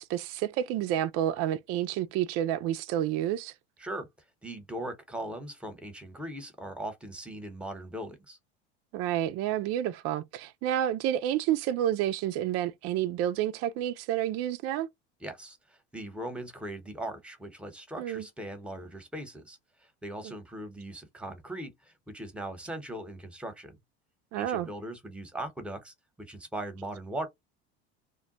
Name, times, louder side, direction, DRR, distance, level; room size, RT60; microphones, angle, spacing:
voice 1, 0.0-3.5 8.9-14.9 18.0-18.2 20.2-20.3 24.3-24.7, right 11 dB, 50° right, 0.4 m, -29 dB
voice 2, 4.4-8.4 15.2-19.6 20.0-23.8 24.4-27.3, right 1 dB, 5° right, 0.9 m, -39 dB
2.2 x 2.2 x 3.8 m
supercardioid pair, 100°, 31 cm